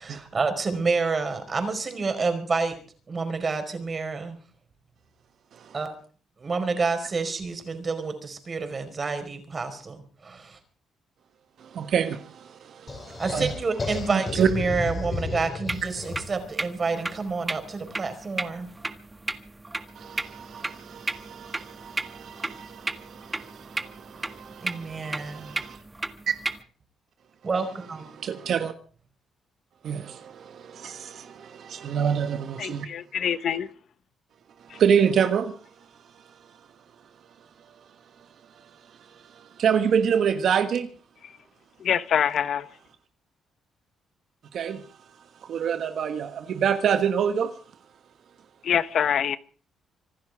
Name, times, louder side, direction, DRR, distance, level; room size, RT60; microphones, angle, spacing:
voice 1, 0.0-2.8 3.1-4.4 5.7-5.9 6.4-10.6 13.2-18.7 24.6-25.6 27.4-28.1, right 4 dB, 35° right, 4.9 m, -29 dB
voice 2, 11.6-13.5 14.1-14.5 19.9-25.8 26.3-26.4 28.1-28.7 29.8-32.9 34.7-35.5 39.3-40.9 44.5-44.8 45.5-47.5, right 7 dB, 65° right, 1.4 m, -27 dB
sound 1, 12.9-16.4, left 3 dB, 30° left, 5.3 m, -33 dB
sound 2, 15.7-26.6, right 2 dB, 15° right, 1.5 m, -35 dB
voice 3, 32.6-33.7 41.8-42.7 48.6-49.4, left 8 dB, 65° left, 0.9 m, -25 dB
25.5 x 11.5 x 4.9 m
cardioid pair, 90°, 0 cm